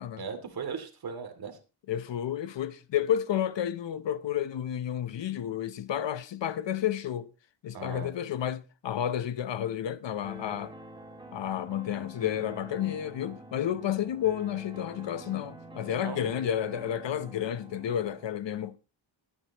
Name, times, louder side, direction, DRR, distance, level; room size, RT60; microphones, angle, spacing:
voice 1, 0.2-1.6 7.7-8.1 16.0-16.2, right 5 dB, 45° right, 2.7 m, -37 dB
voice 2, 1.9-7.3 7.6-10.7 11.3-18.8, left 10 dB, 60° left, 0.9 m, -31 dB
sound 1, 10.2-18.2, right 1 dB, 10° right, 2.9 m, -47 dB
23.0 x 9.8 x 3.0 m
wide cardioid pair, 170°, 49 cm